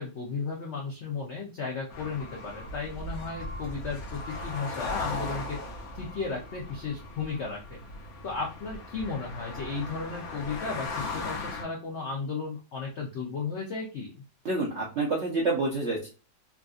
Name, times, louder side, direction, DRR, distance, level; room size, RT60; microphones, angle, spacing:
voice 1, 0.0-7.8 8.2-14.1, left 4 dB, 80° left, -1 dB, 0.6 m, -34 dB
sound 1, 1.9-11.6, left 2 dB, 60° left, 1.1 m, -38 dB
voice 2, 14.4-16.1, right 3 dB, 60° right, -3 dB, 0.7 m, -28 dB
3.5 x 2.4 x 2.4 m, 0.33 s
omnidirectional pair, 2.0 m